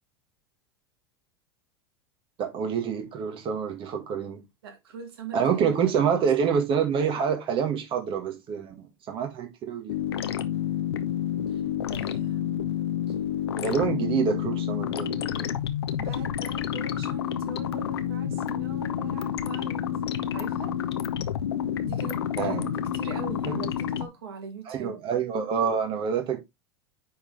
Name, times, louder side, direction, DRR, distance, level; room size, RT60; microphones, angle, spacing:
voice 1, 2.4-4.4 5.3-9.9 13.6-15.5 22.4-22.7 23.5-23.6 24.7-26.4, right 7 dB, 40° right, 1.7 m, -27 dB
voice 2, 4.6-6.6 11.5-11.6 11.9-12.7 13.1-13.2 16.0-19.8 20.3-20.7 21.8-25.0, right 6 dB, 70° right, 1.8 m, -42 dB
sound 1, 9.9-24.1, left 9 dB, 75° left, 0.8 m, -29 dB
9.6 x 4.0 x 3.3 m
hypercardioid pair, 85°, 13 cm